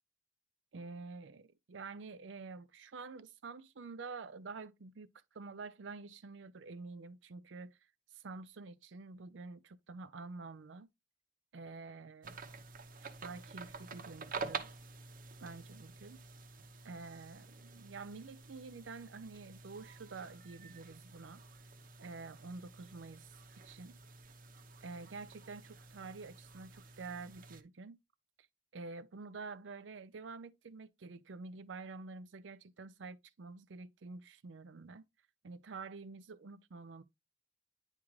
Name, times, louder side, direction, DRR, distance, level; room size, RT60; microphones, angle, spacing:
voice 1, 0.7-5.1 5.3-7.8 8.1-10.9 11.5-12.4 13.0-14.7 15.4-16.2 16.8-21.4 22.0-23.3 23.6-24.0 24.8-28.0 28.7-35.0 35.4-37.0, right 4 dB, 80° right, 0.5 m, -48 dB
sound 1, 12.2-27.6, right 4 dB, 50° right, 0.8 m, -49 dB
9.8 x 3.7 x 3.1 m
head